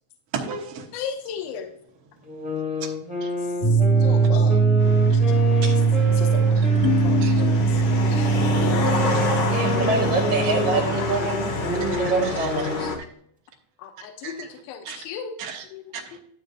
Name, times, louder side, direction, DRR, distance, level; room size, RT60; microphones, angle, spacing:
voice 1, 0.3-0.9 3.2-3.3 4.2-4.6 6.5-6.7 7.2-7.4 8.8-9.2 10.4-10.5 11.8-12.8 14.0-15.0 15.4-15.7 15.9-16.2, right 5 dB, 65° right, -1 dB, 1.4 m, -37 dB
voice 2, 0.9-1.7 4.0-4.6 6.2-6.3 7.0-7.2 8.2-8.3 8.6-9.2 10.7-10.9 13.8-14.3 14.7-15.3 15.7-15.8, left 7 dB, 80° left, 5 dB, 2.6 m, -34 dB
sound 1, 2.2-7.6 8.1-13.0, left 2 dB, 5° right, 0.7 m, -30 dB
sound 2, 3.6-12.4, right 4 dB, 35° left, 1.1 m, -21 dB
sound 3, 4.8-13.0, left 3 dB, 65° left, 1.5 m, -29 dB
voice 3, 9.5-12.9, right 4 dB, 80° right, 1 dB, 1.7 m, -26 dB
11.5 x 8.2 x 2.7 m, 0.65 s
omnidirectional pair, 4.3 m